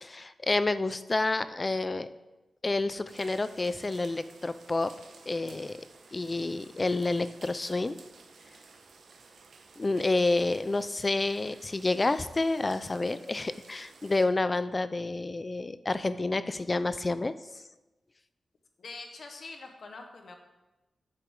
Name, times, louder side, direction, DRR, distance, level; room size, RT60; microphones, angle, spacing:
voice 1, 0.0-2.1 2.6-4.9 5.3-5.8 6.1-8.0 9.8-17.3, left 2 dB, 25° left, 13 dB, 0.3 m, -29 dB
sound 1, 3.1-14.2, right 4 dB, 80° right, 0.9 m, -54 dB
voice 2, 18.8-20.3, left 3 dB, 60° left, 4 dB, 1.1 m, -44 dB
9.3 x 6.8 x 3.7 m, 1.1 s
wide cardioid pair, 105°, 0 cm